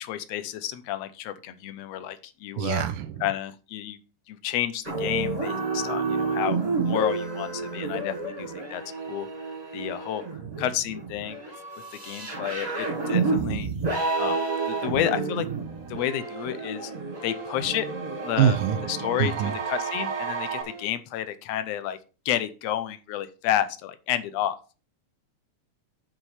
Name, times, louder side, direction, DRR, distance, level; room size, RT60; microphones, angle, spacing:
voice 1, 0.0-2.9 3.2-4.0 4.3-6.6 6.8-8.8 9.1-9.3 9.7-10.2 10.6-11.4 12.0-13.7 14.2-15.5 15.9-16.9 17.2-17.9 18.2-18.6 18.9-22.0 22.2-24.6, left 11 dB, 70° left, 1.6 m, -30 dB
voice 2, 2.6-3.2 18.4-18.8 19.2-19.5, right 10 dB, 85° right, 2.3 m, -24 dB
sound 1, 4.8-20.8, right 4 dB, 25° right, 0.9 m, -30 dB
sound 2, 15.3-20.6, right 5 dB, 60° right, 1.1 m, -36 dB
9.0 x 3.8 x 7.1 m
omnidirectional pair, 3.8 m